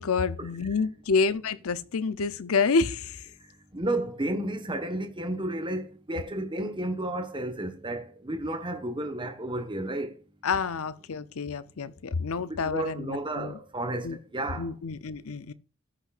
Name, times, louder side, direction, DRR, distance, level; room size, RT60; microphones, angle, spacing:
voice 1, 0.0-3.2 10.4-13.6 14.0-14.2 14.6-15.5, left 4 dB, 65° left, 0.6 m, -28 dB
voice 2, 3.7-10.1 12.3-14.7, right 1 dB, 20° right, 1.2 m, -32 dB
19.0 x 6.5 x 2.5 m
head